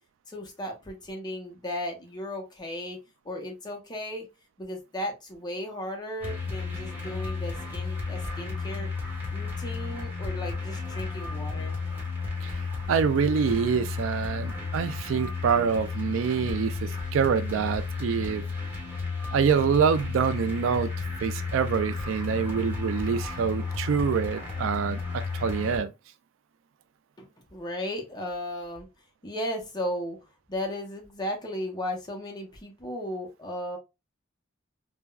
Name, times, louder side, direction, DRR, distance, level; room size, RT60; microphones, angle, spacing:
voice 1, 0.3-3.0 3.2-4.3 4.6-8.9 9.3-11.8 27.2-28.9 29.2-30.2 30.5-33.8, left 1 dB, 20° left, 0.7 m, -35 dB
sound 1, 6.2-25.8, left 4 dB, 10° right, 1.1 m, -33 dB
voice 2, 12.9-18.4 19.3-20.9 21.2-25.9, right 6 dB, 75° right, 0.3 m, -26 dB
3.4 x 2.2 x 2.2 m
head